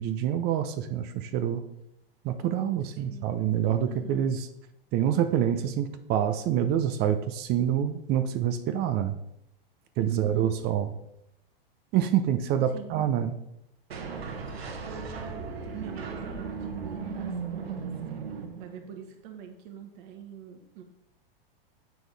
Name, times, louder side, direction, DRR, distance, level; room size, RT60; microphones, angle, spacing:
voice 1, 0.0-1.6 2.2-4.5 4.9-9.2 10.0-10.9 11.9-13.4, right 10 dB, 35° right, 10 dB, 0.6 m, -26 dB
voice 2, 2.9-3.4 3.9-4.3 10.1-10.6 12.7-13.0 14.3-14.5 14.8-17.9 18.6-20.8, right 8 dB, 55° right, 4 dB, 1.3 m, -44 dB
sound 1, 13.9-19.0, right 5 dB, 90° right, 1.3 m, -37 dB
7.4 x 6.0 x 3.4 m, 0.81 s
hypercardioid pair, 125°, 30 cm